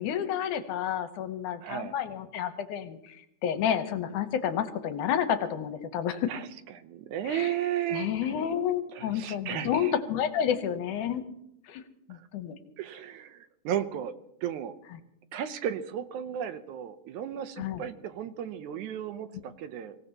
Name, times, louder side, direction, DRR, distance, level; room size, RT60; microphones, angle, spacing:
voice 1, 0.0-6.3 7.2-7.5 7.9-11.2 11.6-11.8 12.1-12.6 14.9-15.0 17.6-17.9, left 9 dB, 80° left, 9 dB, 2.4 m, -30 dB
voice 2, 1.6-1.9 6.3-6.4 6.8-8.1 8.9-9.9 12.8-14.1 14.4-14.7 15.3-20.0, right 10 dB, 75° right, 10 dB, 2.1 m, -34 dB
24.5 x 16.5 x 2.9 m, 0.78 s
omnidirectional pair, 3.6 m